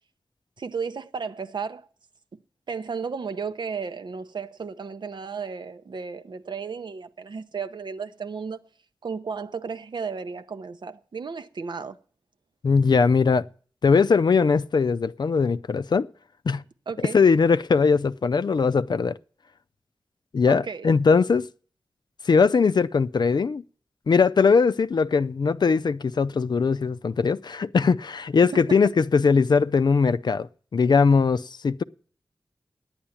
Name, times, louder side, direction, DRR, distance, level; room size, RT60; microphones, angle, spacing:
voice 1, 0.6-1.9 2.7-8.7 9.0-12.0 16.9-17.2 20.4-20.9 28.4-28.9, right 5 dB, 75° right, 0.7 m, -34 dB
voice 2, 12.6-13.5 13.8-16.1 16.5-16.6 17.1-19.2 20.3-21.5 22.2-23.6 24.1-31.8, left 5 dB, 65° left, 0.4 m, -20 dB
9.9 x 8.8 x 7.0 m
cardioid pair, 45°, 8 cm